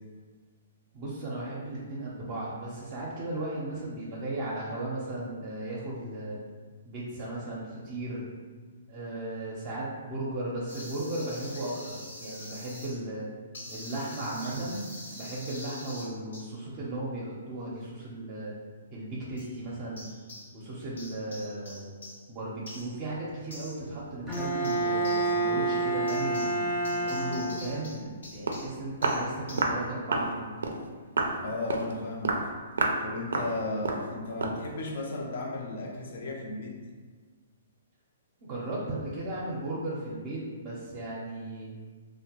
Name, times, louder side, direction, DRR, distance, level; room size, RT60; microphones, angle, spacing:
voice 1, 0.9-6.4 6.8-8.3 8.9-13.3 13.7-14.9 15.1-18.5 18.9-20.0 20.5-21.9 22.3-26.6 26.9-30.5 38.4-41.7, right 1 dB, 35° right, -6 dB, 0.5 m, -36 dB
sound 1, 10.7-13.0 13.5-16.5 19.4-19.6 20.0-20.7 21.0-29.7, left 1 dB, 85° left, 1.1 m, -46 dB
Bowed string instrument, 24.3-28.0, right 2 dB, 10° left, 0.6 m, -29 dB
Walk footsteps, 28.1-28.2 28.5-28.6 29.0-29.2 29.6-29.8 30.1-30.3 30.6-30.8 31.2-31.4 31.7-31.9 32.2-32.5 32.8-33.0 33.3-33.5 33.8-34.1 34.4-34.6, right 3 dB, 85° right, 0.3 m, -28 dB
voice 2, 31.4-32.5 33.0-36.8, left 2 dB, 60° left, 0 dB, 0.5 m, -35 dB
2.8 x 2.1 x 2.9 m, 1.5 s
hypercardioid pair, 140°, 0 cm